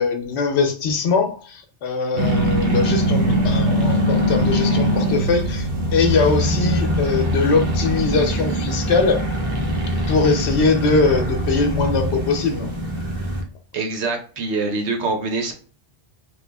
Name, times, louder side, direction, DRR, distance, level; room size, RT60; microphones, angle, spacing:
voice 1, 0.0-9.2 9.9-12.7, left 4 dB, 75° left, 0.9 m, -21 dB
sound 1, 2.2-13.4, right 1 dB, 55° right, 1.0 m, -22 dB
voice 2, 13.7-15.5, right 3 dB, 80° right, 1.0 m, -24 dB
3.1 x 2.4 x 2.2 m
omnidirectional pair, 1.1 m